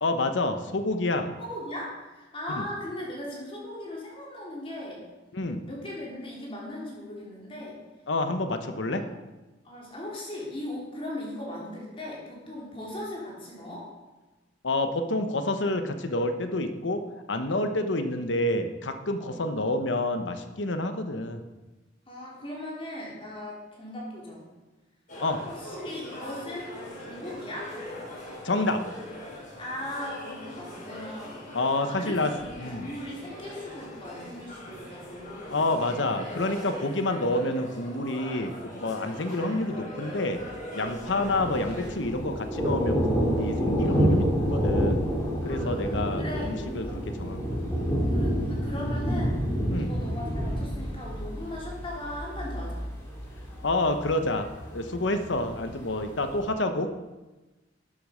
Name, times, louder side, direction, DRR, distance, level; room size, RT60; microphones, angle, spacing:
voice 1, 0.0-1.3 2.5-2.7 5.3-5.6 8.1-9.1 14.6-17.0 17.3-21.4 25.2-25.4 28.4-28.8 31.5-32.9 35.5-40.4 40.7-45.0 45.4-47.6 49.7-49.9 53.6-57.1, left 2 dB, 75° left, 8 dB, 1.0 m, -28 dB
voice 2, 1.4-5.0 5.6-7.8 8.5-8.6 9.6-13.9 19.2-19.4 22.1-24.5 25.4-27.8 29.6-36.1 41.0-41.2 45.4-47.0 48.1-49.3 49.7-52.8, left 1 dB, 30° left, -4 dB, 3.4 m, -39 dB
sound 1, 25.1-41.9, left 1 dB, 45° left, 4.9 m, -41 dB
Thunder, 40.9-56.4, equal, 15° left, 3.3 m, -28 dB
13.0 x 8.8 x 5.1 m, 1.1 s
head